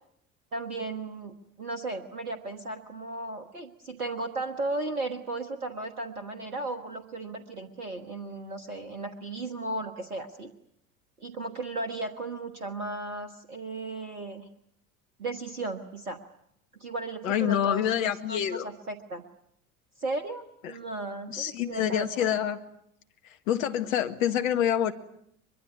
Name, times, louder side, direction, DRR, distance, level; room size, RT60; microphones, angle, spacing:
voice 1, 0.5-10.5 11.2-14.5 15.2-16.2 16.8-19.2 20.0-22.4, right 2 dB, 80° right, 9 dB, 1.6 m, -35 dB
voice 2, 17.2-18.7 21.3-22.6 23.5-24.9, left 10 dB, 65° left, 8 dB, 1.9 m, -26 dB
23.5 x 22.5 x 9.6 m, 0.73 s
figure-of-eight pair, 70°, 43 cm